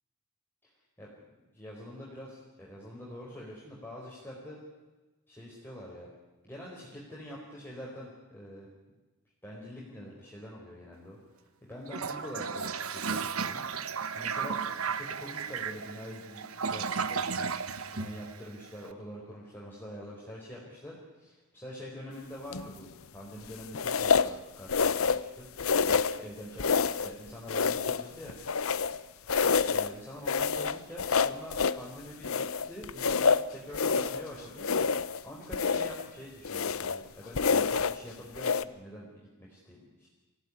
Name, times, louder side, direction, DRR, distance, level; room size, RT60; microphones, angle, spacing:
voice 1, 1.5-4.6 5.3-6.1 6.4-8.7 9.4-11.2 11.7-13.6 13.9-25.5 26.1-28.4 29.6-34.7 35.2-40.1, equal, 10° left, -5 dB, 4.5 m, -45 dB
Toilet flush, 11.9-18.8, right 5 dB, 85° right, 1.2 m, -34 dB
sound 1, 22.5-22.8 23.7-24.3 24.7-25.3 25.6-26.2 26.6-27.1 27.5-29.0 29.3-29.9 30.3-31.8 32.2-34.2 34.6-35.2 35.5-36.0 36.4-37.0 37.3-38.0 38.3-38.6, left 5 dB, 75° left, 0.8 m, -27 dB
24.0 x 16.0 x 9.8 m, 1.2 s
head